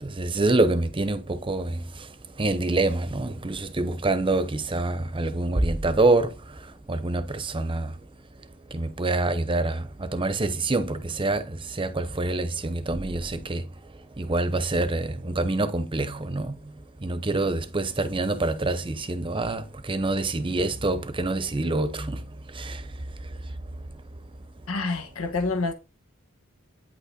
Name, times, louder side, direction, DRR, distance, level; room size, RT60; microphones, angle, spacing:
voice 1, 0.0-1.8 2.4-6.3 6.9-7.9 8.7-13.6 14.2-16.5 17.0-22.2 22.6-22.8, right 2 dB, 25° right, 0.8 m, -26 dB
voice 2, 24.7-25.7, left 3 dB, 85° left, 1.2 m, -27 dB
9.1 x 5.6 x 3.8 m
head